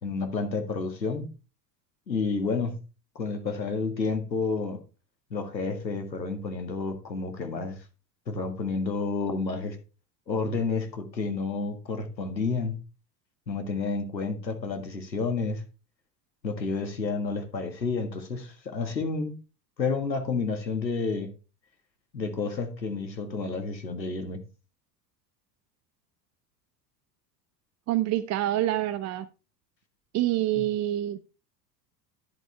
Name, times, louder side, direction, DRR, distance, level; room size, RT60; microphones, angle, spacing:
voice 1, 0.0-1.3 2.1-2.8 3.2-4.8 5.3-7.8 8.3-9.8 10.3-12.8 13.5-15.6 16.4-19.4 19.8-21.3 22.1-24.4 30.6-30.7, left 4 dB, 85° left, 1.8 m, -30 dB
voice 2, 27.9-29.3 30.1-31.3, right 13 dB, 35° right, 0.6 m, -26 dB
11.0 x 10.5 x 3.3 m
figure-of-eight pair, 75°, 50 cm